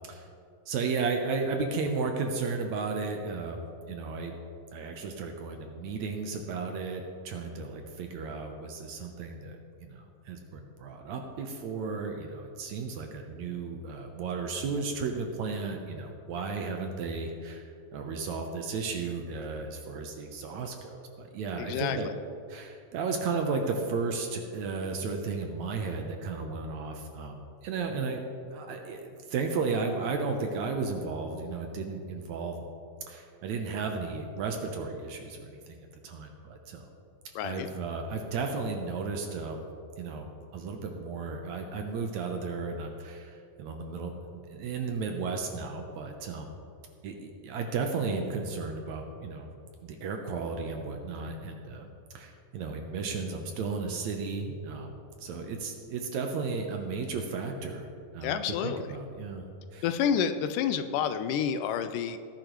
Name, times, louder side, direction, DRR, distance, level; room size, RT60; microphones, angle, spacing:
voice 1, 0.7-4.4 4.7-22.1 22.5-28.2 28.5-32.6 33.1-35.8 36.0-36.9 37.4-39.7 40.0-46.5 47.0-49.5 49.8-51.9 52.1-57.9 58.1-59.5 59.7-59.9, right 4 dB, 70° right, 3 dB, 1.9 m, -34 dB
voice 2, 21.6-22.0 37.4-37.7 58.2-58.9 59.8-62.2, left 8 dB, 80° left, 10 dB, 2.1 m, -29 dB
18.0 x 10.0 x 3.1 m, 2.4 s
omnidirectional pair, 3.8 m